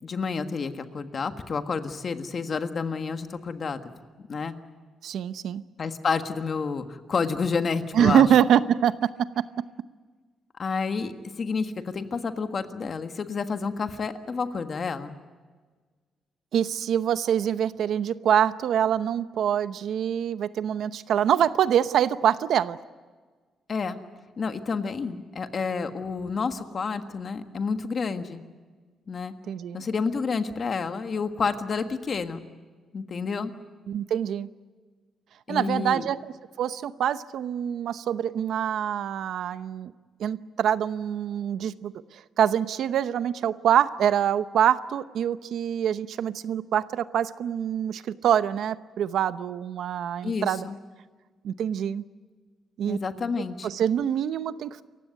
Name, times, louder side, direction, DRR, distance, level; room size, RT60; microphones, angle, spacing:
voice 1, 0.0-3.9 4.3-4.6 5.8-8.3 10.6-15.2 23.7-24.0 24.4-28.4 29.1-29.3 29.7-32.5 32.9-33.5 35.5-36.1 50.2-50.8 52.9-53.7, left 5 dB, 40° left, 8 dB, 1.5 m, -29 dB
voice 2, 5.0-5.6 7.9-9.6 16.5-22.8 29.5-29.9 33.9-34.5 35.5-36.3 36.6-39.9 40.2-50.7 51.4-52.0 52.8-53.0 53.6-54.8, right 9 dB, 70° right, 13 dB, 0.8 m, -25 dB
28.5 x 15.5 x 9.5 m, 1.4 s
cardioid pair, 140°, 0 cm